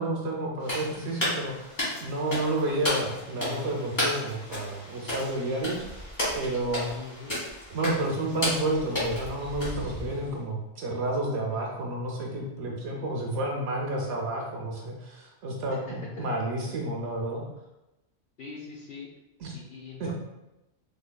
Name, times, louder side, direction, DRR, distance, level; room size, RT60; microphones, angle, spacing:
voice 1, 0.0-6.1 6.3-6.9 7.7-17.4 19.4-19.6 20.0-20.1, right 2 dB, 70° right, 0 dB, 0.8 m, -30 dB
sound 1, 0.6-10.3, left 1 dB, 40° left, 1.5 m, -33 dB
voice 2, 6.9-7.3 12.9-13.1 15.7-16.3 18.4-19.1 19.5-20.1, left 5 dB, 60° left, -3 dB, 0.7 m, -43 dB
3.3 x 3.3 x 2.2 m, 0.97 s
omnidirectional pair, 1.2 m